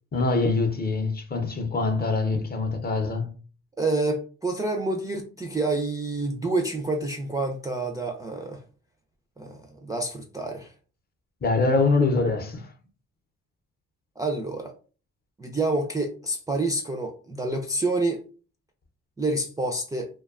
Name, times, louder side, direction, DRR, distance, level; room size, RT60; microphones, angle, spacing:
voice 1, 0.1-3.3 11.4-12.7, left 3 dB, 30° left, 0.6 m, -24 dB
voice 2, 3.8-8.6 9.4-10.7 14.2-14.7 15.4-18.2 19.2-20.1, right 2 dB, 10° right, 0.3 m, -28 dB
2.6 x 2.2 x 2.4 m
cardioid pair, 90°, 30 cm